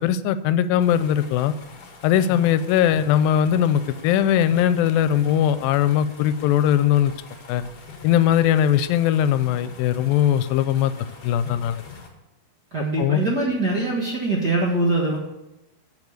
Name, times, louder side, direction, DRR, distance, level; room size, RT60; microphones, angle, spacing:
voice 1, 0.0-1.6 2.0-7.1 7.5-7.6 8.0-10.9 11.2-11.8 13.0-13.2, left 10 dB, 90° left, 13 dB, 2.4 m, -20 dB
sound 1, 0.8-12.1, left 5 dB, 50° left, 2.4 m, -42 dB
voice 2, 12.7-15.2, right 2 dB, 45° right, -3 dB, 1.3 m, -23 dB
7.4 x 7.3 x 7.9 m, 0.93 s
omnidirectional pair, 4.1 m